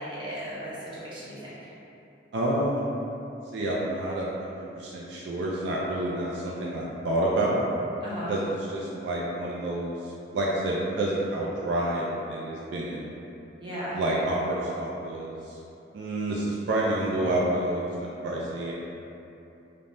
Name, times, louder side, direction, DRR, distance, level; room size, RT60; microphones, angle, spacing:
voice 1, 0.0-1.7 8.0-8.3 13.6-14.0, equal, 25° right, -9 dB, 0.6 m, -36 dB
voice 2, 2.3-2.8 3.5-7.6 8.3-13.1 13.9-15.6 15.9-18.7, right 1 dB, 65° right, -5 dB, 0.3 m, -29 dB
3.3 x 2.1 x 2.5 m, 2.9 s
head